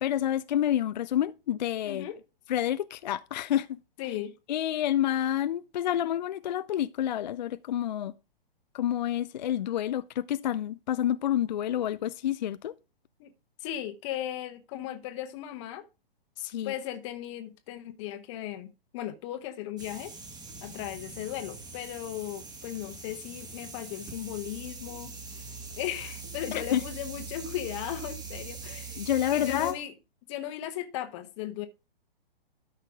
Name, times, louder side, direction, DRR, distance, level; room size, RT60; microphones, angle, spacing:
voice 1, 0.0-2.1 2.5-3.7 4.5-8.1 8.7-12.7 16.4-16.7 26.5-26.8 29.0-29.8, left 11 dB, 50° left, 0.4 m, -28 dB
voice 2, 1.8-2.2 4.0-4.3 13.2-13.3 13.6-15.9 16.6-20.1 20.6-25.1 25.8-29.1 29.3-29.9 30.3-31.7, left 12 dB, 30° left, 1.0 m, -36 dB
sound 1, 19.8-29.7, right 4 dB, 15° right, 1.7 m, -42 dB
12.5 x 5.6 x 3.7 m
figure-of-eight pair, 120°, 29 cm